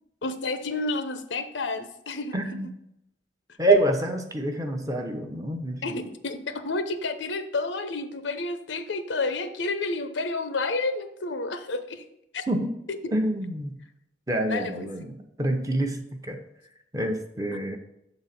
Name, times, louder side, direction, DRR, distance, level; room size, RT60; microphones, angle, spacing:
voice 1, 0.2-2.7 5.8-12.0 12.3-12.5 12.9-13.0 14.5-14.9, left 3 dB, 85° left, 9 dB, 0.7 m, -30 dB
voice 2, 2.3-2.7 3.6-5.8 12.5-12.7 13.1-13.8 14.3-15.1 15.4-16.4 16.9-17.8, right 1 dB, 20° right, 4 dB, 0.7 m, -26 dB
7.2 x 4.0 x 5.7 m, 0.83 s
head